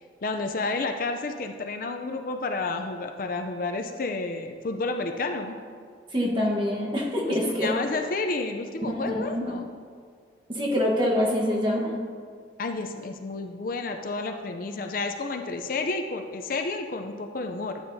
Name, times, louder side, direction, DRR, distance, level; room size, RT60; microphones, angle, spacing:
voice 1, 0.2-5.6 7.3-9.7 12.6-17.8, left 3 dB, 50° left, 5 dB, 0.5 m, -31 dB
voice 2, 6.1-7.7 8.8-9.6 10.5-11.9, equal, 25° right, -2 dB, 1.2 m, -25 dB
12.0 x 8.7 x 2.7 m, 2.1 s
head